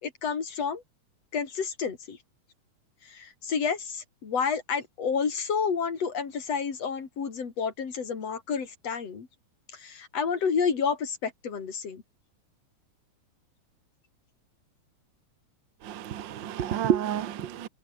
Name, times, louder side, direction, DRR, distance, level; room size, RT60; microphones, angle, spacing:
voice 1, 0.0-0.8 1.3-2.2 3.1-9.3 9.8-12.0, left 6 dB, 55° left, 4.2 m, -30 dB
voice 2, 15.8-17.7, right 10 dB, 55° right, 1.4 m, -29 dB
omnidirectional pair, 3.4 m